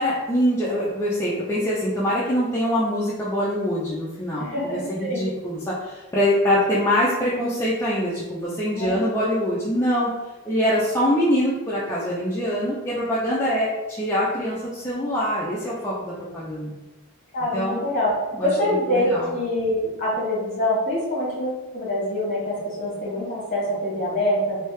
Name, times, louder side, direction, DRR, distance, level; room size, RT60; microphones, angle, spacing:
voice 1, 0.0-10.1 10.5-16.7 17.5-17.8 18.3-18.5 18.9-19.3, equal, 10° left, -8 dB, 0.4 m, -24 dB
voice 2, 4.4-5.3 8.7-9.0 17.3-18.1 18.4-24.6, left 1 dB, 35° left, -5 dB, 1.3 m, -25 dB
3.1 x 2.7 x 3.2 m, 1.1 s
head